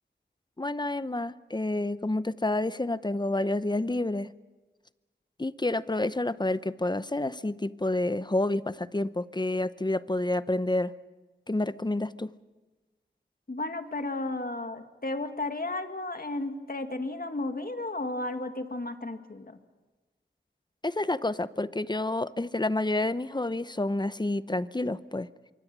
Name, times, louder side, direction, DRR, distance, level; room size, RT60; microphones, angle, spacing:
voice 1, 0.6-4.3 5.4-10.9 11.5-12.3 20.8-25.3, left 2 dB, 25° left, 15 dB, 0.7 m, -29 dB
voice 2, 13.5-19.5, left 2 dB, 50° left, 7 dB, 1.9 m, -33 dB
25.0 x 24.0 x 6.1 m, 1.2 s
wide cardioid pair, 60°, 19 cm